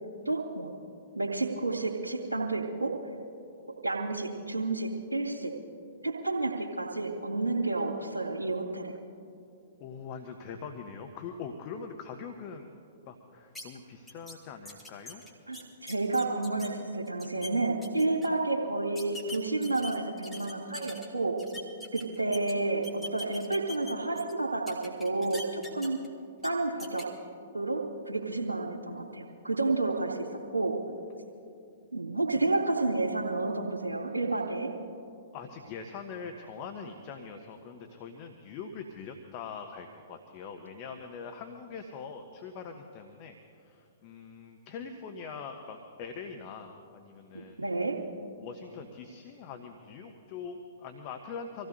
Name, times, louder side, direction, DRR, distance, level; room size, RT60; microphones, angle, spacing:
voice 1, 0.3-0.7 1.1-3.0 3.8-5.5 6.0-8.9 15.5-21.4 21.9-26.0 26.4-27.1 27.5-30.8 31.9-34.7 47.3-48.0, right 2 dB, 80° right, -2 dB, 2.2 m, -30 dB
voice 2, 9.8-12.7 13.1-15.2 35.3-47.6 48.4-51.7, left 5 dB, 40° left, 5 dB, 1.0 m, -43 dB
sound 1, 13.5-13.6 14.1-14.3 14.6-16.7 17.1-17.5 17.8-18.3 18.9-21.0 21.4-22.5 22.8-24.3 24.7-26.1 26.4-26.5 26.8-27.0, left 2 dB, 5° left, 2.5 m, -43 dB
25.5 x 16.0 x 2.7 m, 2.5 s
figure-of-eight pair, 115°, 0 cm